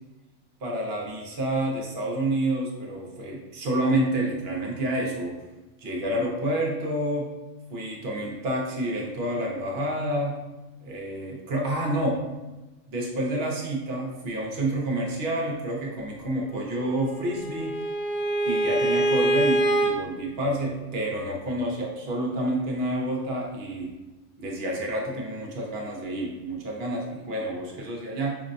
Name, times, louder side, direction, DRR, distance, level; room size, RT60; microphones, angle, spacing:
voice 1, 0.6-5.4 5.8-7.3 7.7-10.4 10.8-12.2 12.9-17.8 18.5-23.9 24.4-28.4, right 1 dB, 55° right, -1 dB, 0.9 m, -29 dB
Bowed string instrument, 16.8-19.9, right 1 dB, 70° left, 0.9 m, -25 dB
5.2 x 2.1 x 2.5 m, 1.1 s
omnidirectional pair, 1.4 m